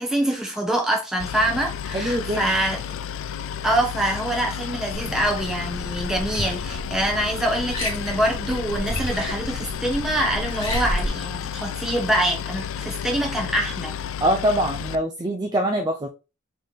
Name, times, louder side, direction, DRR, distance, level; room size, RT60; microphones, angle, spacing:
voice 1, 0.0-2.8 3.6-13.9, right 1 dB, 5° right, 1.1 m, -25 dB
Boat Water vehicle, 1.2-15.0, left 8 dB, 70° left, 0.3 m, -32 dB
voice 2, 1.9-2.5 14.2-16.1, equal, 20° right, 0.5 m, -23 dB
Liquid, 4.9-11.1, equal, 35° left, 2.2 m, -32 dB
4.0 x 3.3 x 4.0 m
head